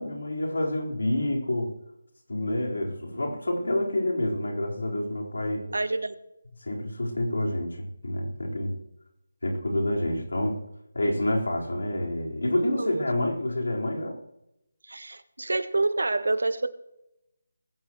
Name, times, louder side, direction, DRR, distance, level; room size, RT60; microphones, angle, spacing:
voice 1, 0.0-1.7 2.3-5.6 6.6-8.8 9.4-10.6 10.9-14.2, left 1 dB, 80° left, -1 dB, 4.7 m, -28 dB
voice 2, 5.7-6.1 12.7-13.0 14.9-16.7, right 2 dB, 85° right, 12 dB, 1.3 m, -27 dB
20.5 x 16.0 x 3.2 m, 0.88 s
figure-of-eight pair, 160°, 0 cm